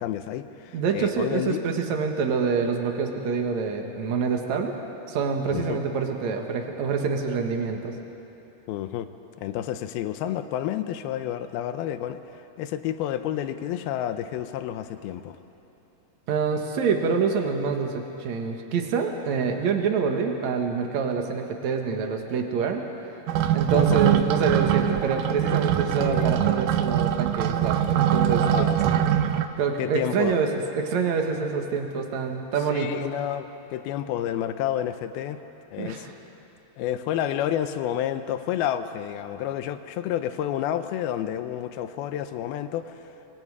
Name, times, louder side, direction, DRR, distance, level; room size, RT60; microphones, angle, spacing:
voice 1, 0.0-1.6 5.5-5.8 8.7-9.1 9.4-15.4 23.7-24.0 26.0-26.3 28.4-29.1 29.8-30.4 32.7-35.4 35.7-36.1 36.8-43.0, left 11 dB, 75° left, 10 dB, 2.5 m, -30 dB
voice 2, 0.7-4.7 5.1-8.0 16.3-22.9 23.5-28.7 29.6-32.9 35.8-36.1, right 5 dB, 55° right, 3 dB, 2.3 m, -26 dB
sound 1, 23.3-29.5, right 11 dB, 75° right, 2.0 m, -23 dB
26.0 x 24.0 x 4.8 m, 2.9 s
omnidirectional pair, 4.7 m